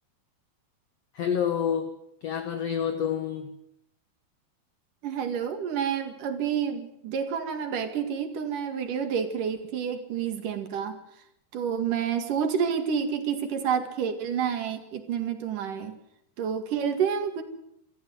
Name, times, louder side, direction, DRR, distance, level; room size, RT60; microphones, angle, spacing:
voice 1, 1.1-1.9 2.2-3.5, left 8 dB, 55° left, 7 dB, 2.0 m, -28 dB
voice 2, 5.0-11.0 11.5-15.9 16.4-17.4, right 7 dB, 65° right, 7 dB, 3.4 m, -29 dB
25.5 x 14.5 x 8.0 m, 0.79 s
omnidirectional pair, 4.3 m